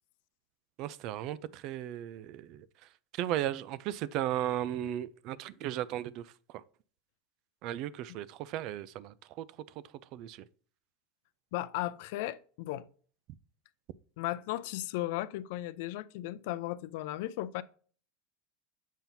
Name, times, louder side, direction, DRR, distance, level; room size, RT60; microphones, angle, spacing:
voice 1, 0.8-2.7 3.1-6.6 7.6-9.5 10.1-10.4, right 12 dB, 50° right, 0.4 m, -36 dB
voice 2, 11.5-12.8 14.2-17.6, left 15 dB, 70° left, 0.4 m, -36 dB
7.2 x 5.6 x 2.7 m
supercardioid pair, 125°, 0 cm